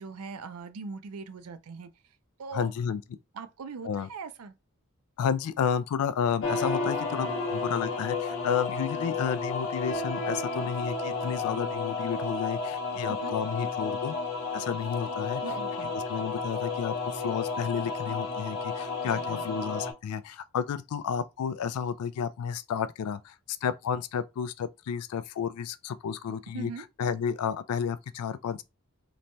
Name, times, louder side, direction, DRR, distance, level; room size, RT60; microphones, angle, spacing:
voice 1, 0.0-1.9 2.4-2.7 3.3-4.5 13.1-13.4 15.4-16.0 19.0-19.4 26.3-26.8, right 4 dB, 85° right, 0.4 m, -41 dB
voice 2, 2.5-3.0 3.8-4.1 5.2-14.1 14.5-15.4 15.9-26.7 27.0-28.6, left 7 dB, 85° left, 0.3 m, -31 dB
sound 1, 6.4-19.9, left 4 dB, 65° left, 0.7 m, -32 dB
3.0 x 2.2 x 2.6 m
head